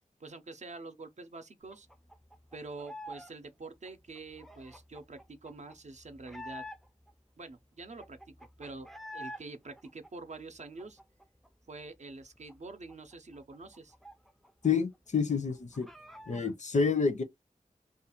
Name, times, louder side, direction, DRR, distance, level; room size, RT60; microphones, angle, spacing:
voice 1, 0.2-1.9 2.5-6.6 7.4-11.0 11.7-13.9, right 3 dB, 55° right, 0.5 m, -46 dB
sound 1, 1.7-3.3 3.6-7.1 7.5-7.6 7.8-9.4 9.8-11.5 11.8-11.9 12.2-14.7 14.9-15.0 15.4-16.5, left 1 dB, ahead, 0.4 m, -48 dB
voice 2, 14.6-15.9 16.3-17.2, left 5 dB, 60° left, 0.5 m, -28 dB
2.4 x 2.3 x 2.8 m
wide cardioid pair, 70°, 14 cm